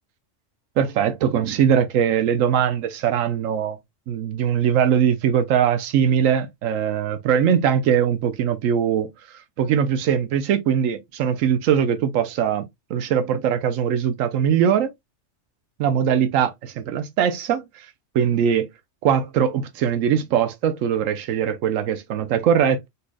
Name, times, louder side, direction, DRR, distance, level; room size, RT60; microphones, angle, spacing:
voice 1, 0.8-3.8 4.1-9.1 9.6-12.6 12.9-14.9 15.8-17.6 18.1-18.7 19.0-22.9, right 8 dB, 90° right, 1.0 m, -21 dB
4.2 x 3.3 x 2.2 m
omnidirectional pair, 1.3 m